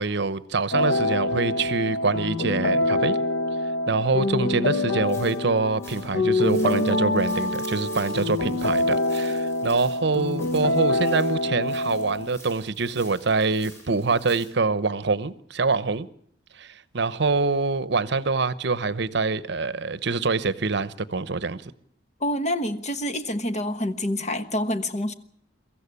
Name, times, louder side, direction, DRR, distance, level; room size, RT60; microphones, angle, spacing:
voice 1, 0.0-3.2 3.9-16.1 16.5-21.7, right 4 dB, 65° right, 0.9 m, -25 dB
sound 1, 0.7-12.3, left 2 dB, 80° left, 0.9 m, -25 dB
sound 2, 5.0-14.5, equal, 15° left, 7.4 m, -48 dB
voice 2, 22.2-25.1, left 1 dB, 40° left, 1.3 m, -27 dB
23.5 x 14.5 x 8.4 m
head